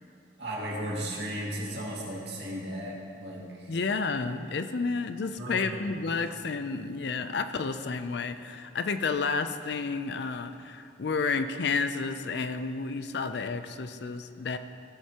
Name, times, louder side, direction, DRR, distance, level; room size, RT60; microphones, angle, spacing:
voice 1, 0.4-3.7 5.4-5.8 6.6-6.7, right 1 dB, 60° right, -4 dB, 2.3 m, -35 dB
voice 2, 3.7-14.6, left 4 dB, 60° left, 10 dB, 0.4 m, -31 dB
17.0 x 8.1 x 2.9 m, 2.8 s
head